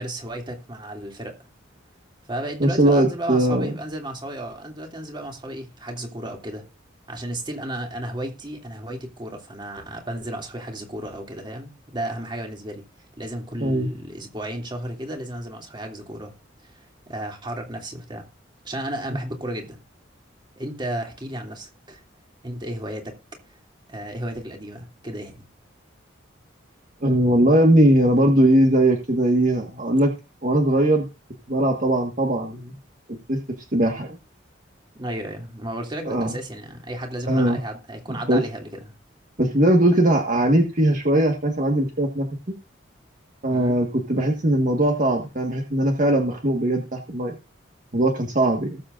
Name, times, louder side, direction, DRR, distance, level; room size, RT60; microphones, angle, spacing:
voice 1, 0.0-1.4 2.2-6.6 7.1-12.8 13.2-16.3 16.6-16.7 17.1-18.2 18.6-19.8 20.6-22.0 22.4-23.1 23.9-25.4 34.9-38.7 43.5-43.8, right 1 dB, 25° right, 2.7 m, -33 dB
voice 2, 2.6-3.7 13.6-13.9 27.0-30.1 30.4-31.1 31.5-32.8 33.3-33.4 33.7-34.1 36.0-36.4 37.3-37.6 38.3-38.4 39.4-42.3 43.4-47.4 47.9-48.8, right 1 dB, 40° right, 1.7 m, -20 dB
19.5 x 7.6 x 2.6 m
head